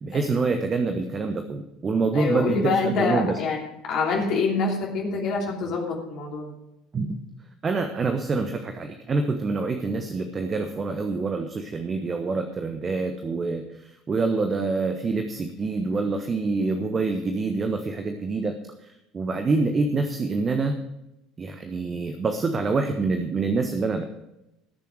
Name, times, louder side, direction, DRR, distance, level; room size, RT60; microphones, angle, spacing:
voice 1, 0.0-3.4 6.9-7.2 7.6-20.8 21.4-24.0, right 3 dB, 30° right, 7 dB, 1.1 m, -26 dB
voice 2, 2.1-3.6 3.8-6.5, left 4 dB, 45° left, -2 dB, 3.0 m, -26 dB
19.0 x 6.9 x 4.8 m, 0.89 s
figure-of-eight pair, 65°, 0 cm